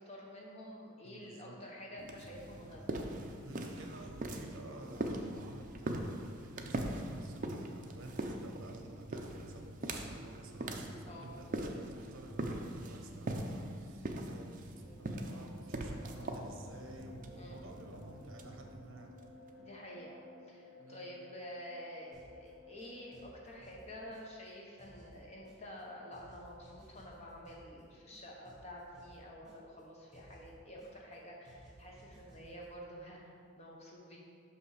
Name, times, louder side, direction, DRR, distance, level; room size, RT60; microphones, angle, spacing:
voice 1, 0.0-3.1 11.1-11.3 17.4-17.6 19.6-20.2 20.5-34.2, equal, 30° left, -2 dB, 0.9 m, -49 dB
voice 2, 1.0-1.6 3.4-19.1 20.8-21.1, right 1 dB, 70° right, 2 dB, 0.9 m, -52 dB
sound 1, 2.0-19.5, right 1 dB, 40° right, 0.5 m, -42 dB
sound 2, 14.8-23.7, left 2 dB, 70° left, 1.7 m, -56 dB
sound 3, 22.1-22.5 22.8-24.5 24.8-25.8 26.1-27.8 28.1-29.8 30.1-31.2 31.4-32.7, right 1 dB, 5° right, 1.3 m, -59 dB
6.0 x 5.7 x 4.9 m, 2.3 s
head